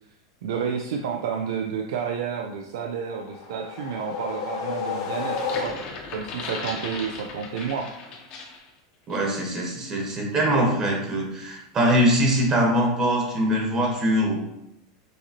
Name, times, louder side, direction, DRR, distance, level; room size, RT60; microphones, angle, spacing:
voice 1, 0.4-5.8 6.1-7.9, right 6 dB, 80° right, 3 dB, 0.4 m, -30 dB
sound 1, 3.1-6.2, left 5 dB, 80° left, 1.3 m, -31 dB
sound 2, 5.2-8.7 9.1-9.3, left 4 dB, 45° left, 1.0 m, -37 dB
voice 2, 9.1-14.4, equal, 30° right, -1 dB, 1.3 m, -22 dB
6.3 x 2.8 x 2.9 m, 0.83 s
supercardioid pair, 135°, 2 cm